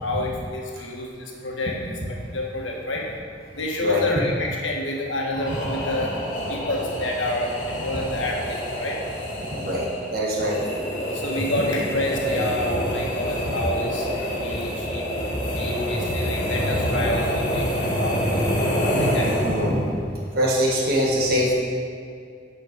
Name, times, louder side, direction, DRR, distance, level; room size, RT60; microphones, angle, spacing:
voice 1, 0.0-1.9 2.3-3.0 3.5-6.1 6.5-9.0 11.1-15.2 15.5-19.3, left 1 dB, 85° left, -1 dB, 1.6 m, -28 dB
sound 1, 5.3-19.9, equal, 45° left, 2.4 m, -27 dB
voice 2, 9.5-10.6 19.4-19.9 20.3-21.5, equal, 55° right, -3 dB, 1.5 m, -23 dB
9.3 x 5.6 x 5.2 m, 2.3 s
head